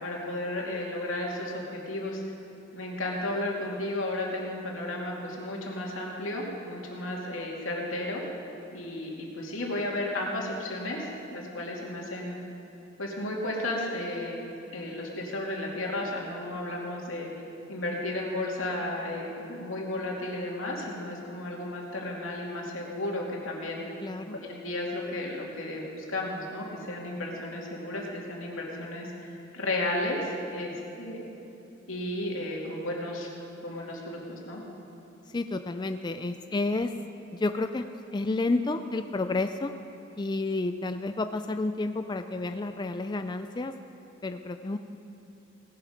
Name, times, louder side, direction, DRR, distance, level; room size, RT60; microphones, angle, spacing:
voice 1, 0.0-2.2 2.7-8.2 8.7-12.4 13.0-14.4 14.7-17.3 17.7-23.8 24.4-30.7 31.0-31.3 31.9-33.3 33.6-34.6, left 1 dB, 90° left, -2 dB, 2.6 m, -33 dB
voice 2, 24.0-24.4 35.3-36.9 37.3-37.9 38.1-39.7 40.2-43.7 44.2-44.8, left 2 dB, 20° left, 8 dB, 0.4 m, -30 dB
18.0 x 11.5 x 5.2 m, 2.8 s
head